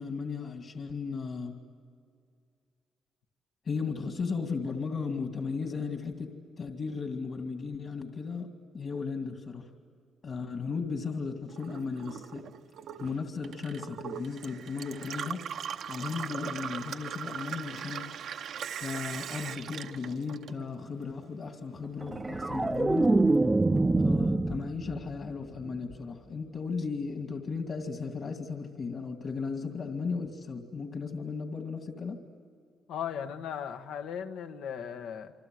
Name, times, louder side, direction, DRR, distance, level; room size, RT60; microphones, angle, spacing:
voice 1, 0.0-1.6 3.6-6.3 6.6-9.7 10.2-12.5 13.0-15.4 15.9-18.1 18.8-23.1 24.0-32.2, left 5 dB, 50° left, 5 dB, 2.4 m, -35 dB
Gurgling / Water tap faucet / Sink (filling or washing), 11.5-21.0 21.3-22.2, right 8 dB, 70° right, 1.0 m, -40 dB
sound 1, 22.0-25.2 25.5-25.9, right 2 dB, 20° right, 0.7 m, -25 dB
voice 2, 32.9-35.3, left 8 dB, 85° left, 7 dB, 1.4 m, -37 dB
28.5 x 25.0 x 7.8 m, 2.3 s
cardioid pair, 90°, 0 cm